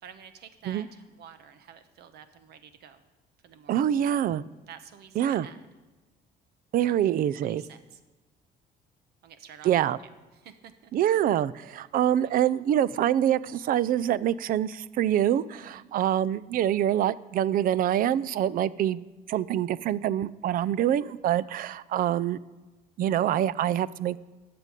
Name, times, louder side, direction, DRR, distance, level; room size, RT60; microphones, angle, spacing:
voice 1, 0.0-3.0 3.4-3.9 4.7-5.7 6.9-8.0 9.2-10.9 12.2-12.5 15.6-15.9, right 8 dB, 75° right, 10 dB, 1.2 m, -50 dB
voice 2, 3.7-4.4 5.2-5.5 6.7-7.6 9.6-10.0 10.9-19.0 19.3-22.4 23.0-24.2, right 11 dB, 55° right, 19 dB, 0.5 m, -25 dB
12.0 x 6.9 x 9.1 m, 1.2 s
cardioid pair, 110°, 17 cm